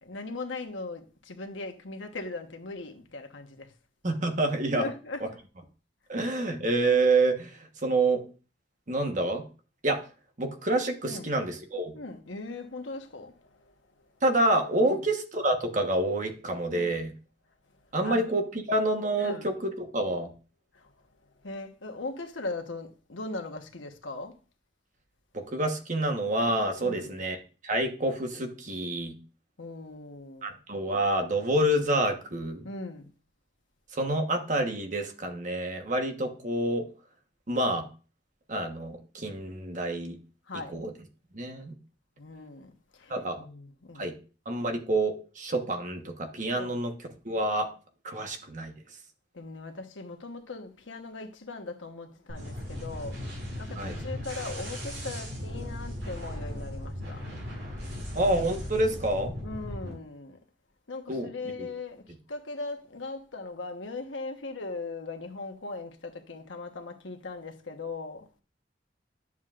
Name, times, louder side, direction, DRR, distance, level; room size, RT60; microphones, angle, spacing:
voice 1, 0.0-3.7 4.8-5.3 11.1-11.3 11.9-13.4 13.6-13.7 14.8-15.0 16.7-17.0 18.0-18.3 19.2-19.5 20.7-20.9 21.4-24.4 26.8-27.2 29.6-30.5 32.6-33.1 40.5-40.7 42.2-44.1 46.5-46.8 49.3-57.2 59.4-60.4 60.9-68.3, left 3 dB, 85° left, 1.2 m, -39 dB
voice 2, 4.0-4.9 5.2-5.3 6.1-8.2 8.9-9.4 9.8-10.0 10.4-11.9 14.2-17.1 17.9-20.3 25.3-29.2 30.4-32.6 33.9-36.9 37.5-37.9 38.5-40.2 40.7-40.9 41.3-41.7 43.1-43.4 44.0-44.1 44.5-46.9 47.2-47.7 48.0-48.7 53.8-54.0 58.1-59.3 61.1-61.3 61.6-61.7, right 2 dB, 40° right, 1.2 m, -28 dB
sound 1, 52.3-59.9, left 1 dB, 85° right, 4.7 m, -37 dB
10.5 x 7.2 x 2.5 m
head